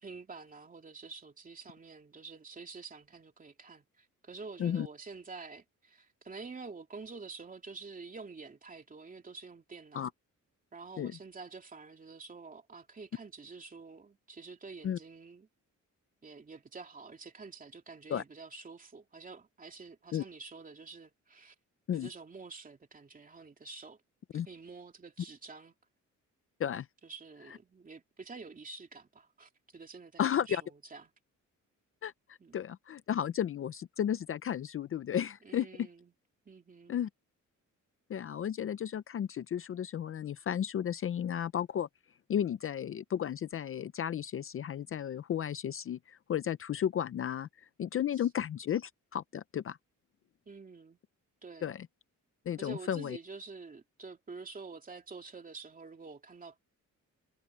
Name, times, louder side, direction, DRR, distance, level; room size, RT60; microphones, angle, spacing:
voice 1, 0.0-10.1 10.7-15.5 16.2-21.5 21.9-24.0 24.3-25.7 27.0-31.1 32.4-32.5 35.4-36.1 36.4-37.0 48.1-48.3 50.5-51.0 51.4-51.8 52.6-56.6, right 4 dB, 25° right, 2.8 m, -48 dB
voice 2, 30.2-30.6 32.0-35.9 36.9-37.1 38.1-41.9 42.3-49.8 51.6-51.9 52.5-53.2, left 9 dB, 45° left, 0.5 m, -33 dB
wide cardioid pair, 165°, 31 cm